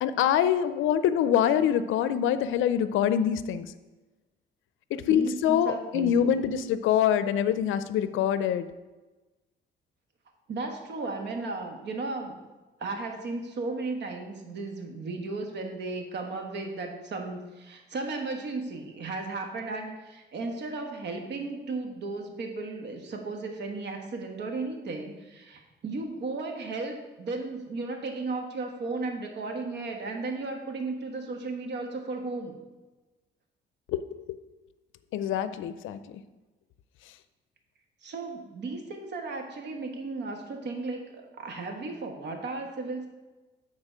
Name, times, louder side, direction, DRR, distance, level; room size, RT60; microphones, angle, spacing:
voice 1, 0.0-3.7 4.9-8.7 33.9-34.0 34.3-34.4 35.1-36.0, left 9 dB, 85° left, 13 dB, 0.5 m, -25 dB
voice 2, 4.9-6.4 10.5-12.4 12.8-32.5 38.0-43.1, right 3 dB, 60° right, 4 dB, 1.3 m, -35 dB
8.8 x 4.0 x 5.0 m, 1.2 s
cardioid pair, 90°, 20 cm